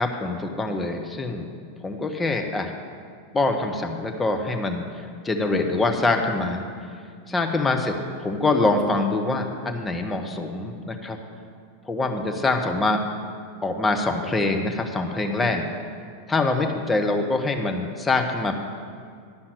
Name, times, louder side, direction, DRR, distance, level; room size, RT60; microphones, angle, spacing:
voice 1, 0.0-1.5 1.8-2.7 3.3-6.6 7.3-11.2 11.9-13.0 13.6-15.7 16.3-18.5, left 2 dB, 10° left, 3 dB, 1.0 m, -24 dB
11.5 x 5.7 x 7.9 m, 2.2 s
figure-of-eight pair, 90°, 0 cm